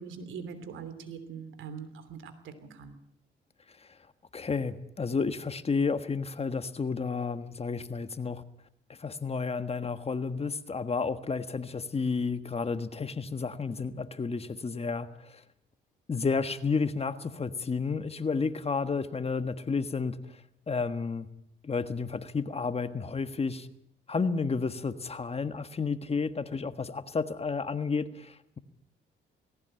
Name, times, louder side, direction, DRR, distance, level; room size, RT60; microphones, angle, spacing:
voice 1, 0.0-3.0, right 6 dB, 75° right, 11 dB, 3.1 m, -42 dB
voice 2, 4.3-8.4 9.0-15.4 16.1-20.2 20.7-21.3 21.6-23.7 24.1-28.6, left 4 dB, 30° left, 11 dB, 1.4 m, -31 dB
18.5 x 17.0 x 9.0 m, 0.75 s
cardioid pair, 90°, 20 cm